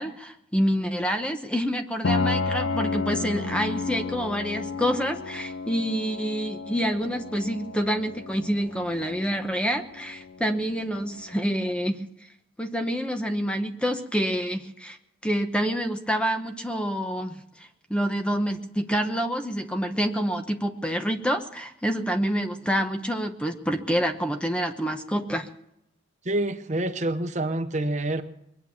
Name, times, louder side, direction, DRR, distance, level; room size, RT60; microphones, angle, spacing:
voice 1, 0.0-12.3 12.6-15.0 15.2-25.5, equal, 5° left, 6 dB, 0.9 m, -27 dB
Piano, 2.0-11.6, left 4 dB, 80° left, 0.5 m, -32 dB
voice 2, 26.2-28.2, right 1 dB, 40° right, 8 dB, 1.0 m, -27 dB
22.0 x 9.1 x 7.1 m, 0.79 s
head